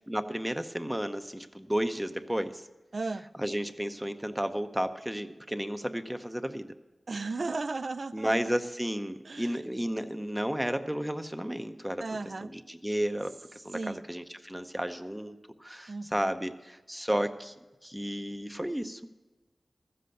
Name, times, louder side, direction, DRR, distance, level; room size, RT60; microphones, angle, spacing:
voice 1, 0.1-2.6 3.4-6.7 8.1-12.0 12.4-17.5 17.8-19.0, equal, 5° right, 8 dB, 0.7 m, -33 dB
voice 2, 2.9-3.3 7.1-8.3 9.2-9.6 12.0-12.5 13.7-14.0 15.9-16.3, right 3 dB, 65° right, 11 dB, 0.4 m, -35 dB
14.5 x 7.8 x 6.5 m, 1.2 s
cardioid pair, 50°, 0 cm